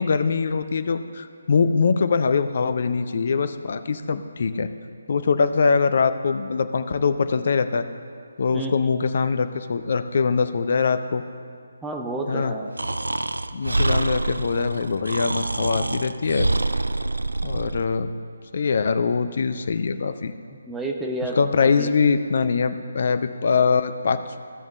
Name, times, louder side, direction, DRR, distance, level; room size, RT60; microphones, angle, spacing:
voice 1, 0.0-4.7 5.1-7.8 8.4-11.2 12.3-12.5 13.5-16.5 17.4-18.1 18.5-20.3 21.4-24.4, left 5 dB, 45° left, 11 dB, 0.5 m, -23 dB
voice 2, 11.8-12.7 20.6-21.9, right 2 dB, 5° right, 0 dB, 0.7 m, -30 dB
Breathing, 12.8-17.9, right 2 dB, 70° right, 0.3 m, -26 dB
15.5 x 7.1 x 3.1 m, 2.2 s
figure-of-eight pair, 145°, 0 cm